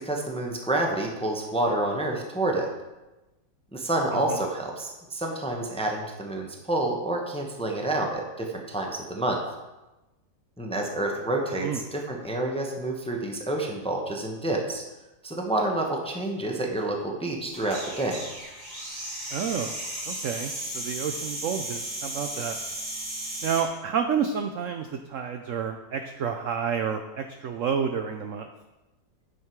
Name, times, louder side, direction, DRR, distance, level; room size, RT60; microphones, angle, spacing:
voice 1, 0.0-2.7 3.7-9.4 10.6-14.8 15.2-18.2, right 2 dB, 5° left, 1 dB, 0.7 m, -28 dB
sound 1, 17.5-23.7, right 1 dB, 45° right, 3.8 m, -35 dB
voice 2, 19.3-19.7 20.1-22.6 23.4-28.5, right 7 dB, 80° right, 7 dB, 0.7 m, -30 dB
9.1 x 6.6 x 4.6 m, 1.1 s
omnidirectional pair, 2.0 m